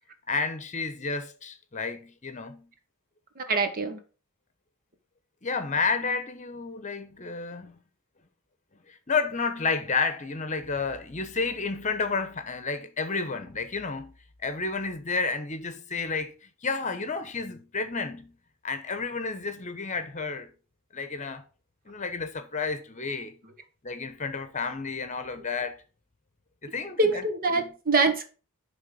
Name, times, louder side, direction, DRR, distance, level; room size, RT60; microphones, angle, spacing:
voice 1, 0.3-2.7 5.4-7.8 8.9-14.1 14.4-16.3 16.6-18.4 18.6-20.5 20.9-21.4 21.9-23.4 23.8-25.7 26.6-27.2 27.5-27.7, left 4 dB, 35° left, 1.0 m, -31 dB
voice 2, 3.4-4.0 27.0-28.3, right 3 dB, 40° right, 1.2 m, -24 dB
10.5 x 3.7 x 5.3 m
head